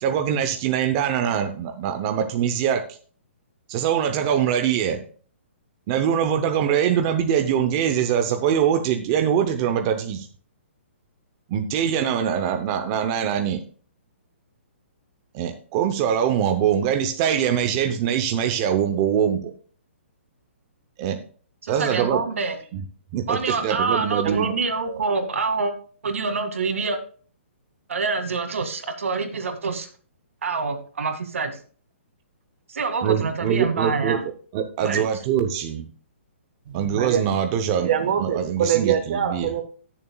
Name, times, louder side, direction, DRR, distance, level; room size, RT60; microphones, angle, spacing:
voice 1, 0.0-3.0 3.7-5.0 5.9-10.3 11.5-13.6 15.3-19.5 21.0-21.2 21.7-22.2 22.7-22.8 23.1-24.5 33.0-35.9 36.7-37.9 38.2-38.9 39.3-39.5, right 8 dB, 20° right, 6 dB, 0.6 m, -23 dB
voice 2, 21.6-22.6 23.3-25.7 26.0-27.0 27.9-29.9 30.4-31.6 32.7-34.2 34.8-35.1, right 4 dB, 80° right, 6 dB, 2.0 m, -26 dB
voice 3, 24.2-24.6 24.9-25.0 36.7-37.2 37.8-39.6, right 8 dB, 40° right, 6 dB, 1.1 m, -24 dB
19.5 x 7.0 x 2.3 m, 0.42 s
hypercardioid pair, 170°, 7 cm